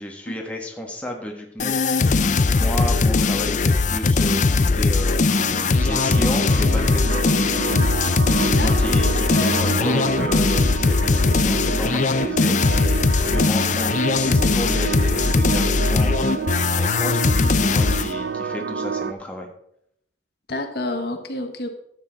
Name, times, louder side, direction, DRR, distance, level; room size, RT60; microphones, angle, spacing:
voice 1, 0.0-1.9 2.5-7.5 8.4-16.4 16.7-19.5, equal, 5° left, 1 dB, 1.4 m, -32 dB
sound 1, 1.6-18.1, left 3 dB, 40° left, 0.5 m, -20 dB
sound 2, 5.3-19.1, right 5 dB, 65° right, 0.5 m, -29 dB
voice 2, 8.6-10.0 20.5-21.7, left 2 dB, 60° left, 5 dB, 1.3 m, -29 dB
12.5 x 8.2 x 4.0 m, 0.73 s
head